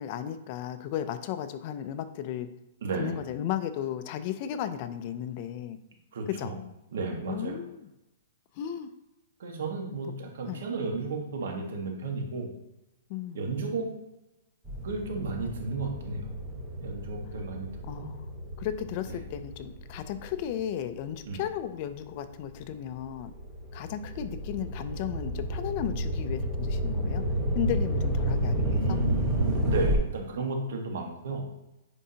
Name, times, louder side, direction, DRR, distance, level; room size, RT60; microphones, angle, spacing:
voice 1, 0.0-2.5 3.0-5.8 6.3-6.6 7.3-7.9 8.6-8.9 10.5-10.7 13.1-13.5 17.8-18.3 18.6-23.3 23.7-27.3 27.5-29.0, left 10 dB, 35° left, 11 dB, 0.4 m, -34 dB
voice 2, 2.8-3.2 6.1-6.5 6.9-7.6 9.4-12.5 13.3-13.9 14.8-16.3 16.8-17.7 18.0-18.1 19.1-19.2 21.2-21.4 28.6-31.4, right 3 dB, 65° right, 2 dB, 1.4 m, -33 dB
sound 1, 14.6-21.4 22.0-29.9, equal, 10° right, 1.1 m, -31 dB
9.7 x 3.7 x 2.8 m, 0.92 s
hypercardioid pair, 170°, 0 cm